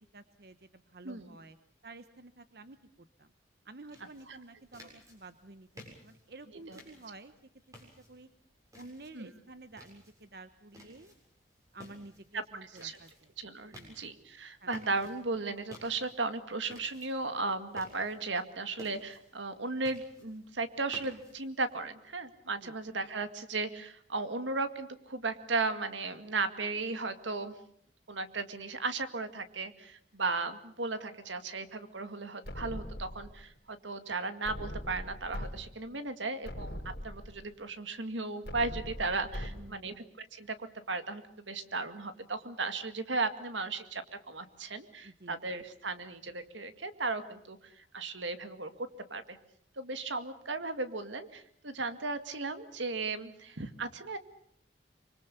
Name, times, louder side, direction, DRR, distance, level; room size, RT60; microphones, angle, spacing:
voice 1, 0.1-1.6 1.8-3.3 3.6-7.3 7.8-8.3 8.7-11.1 11.7-13.3 13.7-14.0 14.6-14.7 22.6-22.8 39.4-40.0 45.0-45.4, right 2 dB, 55° right, 11 dB, 1.0 m, -51 dB
sound 1, 3.9-21.7, equal, 20° right, 7.2 m, -56 dB
voice 2, 12.6-13.0 13.4-27.5 28.1-36.8 37.0-49.4 49.8-54.2, right 3 dB, 85° right, 10 dB, 2.1 m, -36 dB
sound 2, 32.4-33.5 34.4-35.5 35.9-36.0 36.4-37.5 38.4-39.5, equal, 55° left, 5.4 m, -41 dB
25.0 x 24.5 x 6.9 m, 0.67 s
head